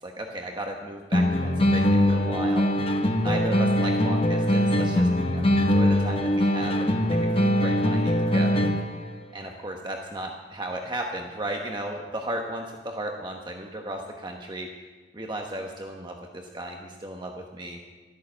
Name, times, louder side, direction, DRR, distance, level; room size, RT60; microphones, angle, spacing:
voice 1, 0.0-2.7 3.2-8.5 9.3-14.7 15.1-17.8, right 1 dB, 25° right, 2 dB, 1.1 m, -35 dB
sound 1, 1.1-9.1, left 1 dB, 30° left, 1.0 m, -22 dB
13.0 x 11.5 x 7.8 m, 1.3 s
head